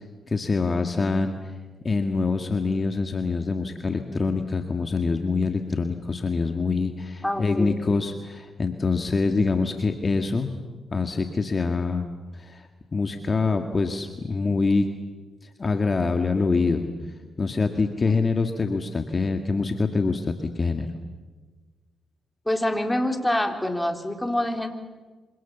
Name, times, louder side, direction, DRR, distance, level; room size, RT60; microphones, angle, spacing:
voice 1, 0.3-1.3 1.8-10.6 10.9-14.9 15.6-16.9 17.4-20.9, left 4 dB, 40° left, 5 dB, 2.0 m, -25 dB
voice 2, 7.2-8.1 18.1-18.2 22.5-24.7, left 1 dB, 10° left, 4 dB, 4.1 m, -26 dB
26.5 x 26.0 x 7.1 m, 1.3 s
supercardioid pair, 50°, 0 cm